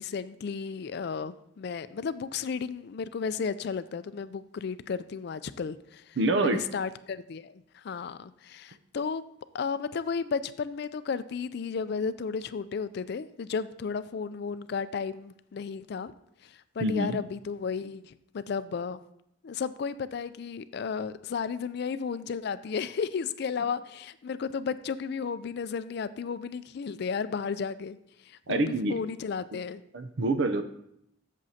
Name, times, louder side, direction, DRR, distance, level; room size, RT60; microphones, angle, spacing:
voice 1, 0.0-9.2 9.5-16.1 16.4-19.0 19.4-28.0 28.2-29.8, left 5 dB, 55° left, 14 dB, 0.4 m, -33 dB
voice 2, 6.2-6.6 16.8-17.2 28.5-29.0 29.9-30.6, right 2 dB, 65° right, 8 dB, 0.6 m, -26 dB
12.5 x 7.4 x 2.8 m, 0.77 s
head